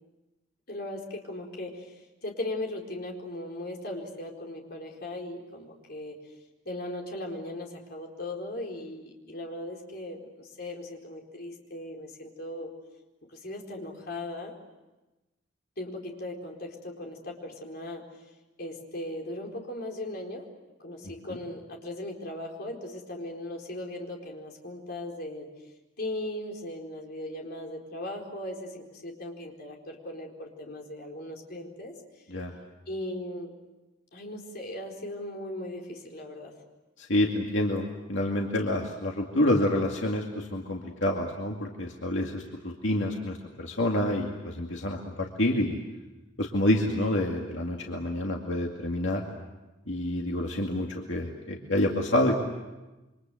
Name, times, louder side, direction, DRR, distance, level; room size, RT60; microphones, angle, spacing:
voice 1, 0.7-6.2 6.6-12.7 13.3-14.5 15.8-18.0 18.6-20.5 20.8-25.5 26.0-32.0 32.9-33.5 34.1-36.5, left 1 dB, 55° left, 0 dB, 4.4 m, -38 dB
voice 2, 37.0-45.8 46.4-49.2 49.9-52.4, left 1 dB, 75° left, 0 dB, 2.4 m, -28 dB
28.0 x 25.0 x 7.8 m, 1.1 s
head